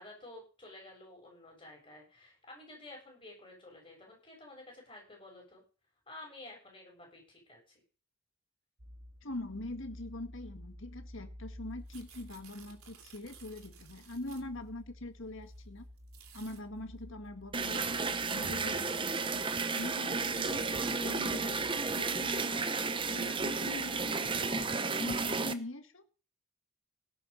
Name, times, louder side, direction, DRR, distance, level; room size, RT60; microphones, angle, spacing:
voice 1, 0.0-5.6 6.1-7.8, left 2 dB, 25° left, 0 dB, 7.4 m, -51 dB
sound 1, 8.8-24.1, left 1 dB, 45° right, 1.7 m, -53 dB
voice 2, 9.2-15.9 16.3-19.4 19.7-22.7 23.0-26.1, left 1 dB, 60° left, 8 dB, 1.9 m, -43 dB
sound 2, 11.7-14.6 15.4-15.6 16.0-16.6 17.8-19.8 20.1-20.7 21.4-21.5 21.7-22.2 22.7-22.8 23.1-24.7, right 8 dB, 80° right, 3.0 m, -57 dB
sound 3, 17.5-25.5, right 4 dB, 25° right, 0.8 m, -33 dB
17.0 x 7.4 x 5.3 m, 0.36 s
head